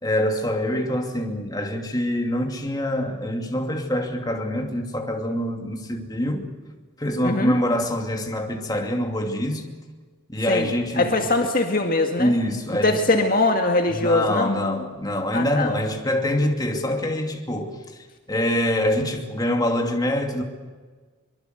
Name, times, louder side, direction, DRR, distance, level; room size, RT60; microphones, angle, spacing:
voice 1, 0.0-6.5 7.0-9.7 10.3-11.1 12.2-13.0 13.9-17.8 18.3-20.4, left 1 dB, 20° left, 2.6 m, -25 dB
voice 2, 7.2-7.5 10.5-10.7 11.0-12.3 12.8-14.5 15.3-15.7, left 2 dB, 45° left, 2.0 m, -21 dB
24.5 x 23.5 x 8.1 m
head